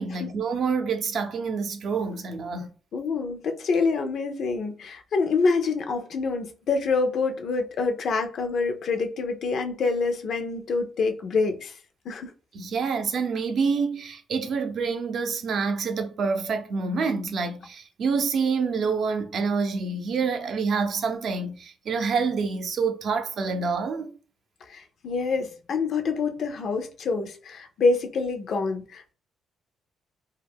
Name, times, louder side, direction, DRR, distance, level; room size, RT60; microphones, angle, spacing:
voice 1, 0.0-2.8 12.5-24.1, right 5 dB, 60° right, 0.5 m, -27 dB
voice 2, 2.9-11.7 12.1-12.3 24.7-29.1, left 4 dB, 65° left, 0.5 m, -26 dB
2.3 x 2.1 x 3.4 m
cardioid pair, 75°, 0 cm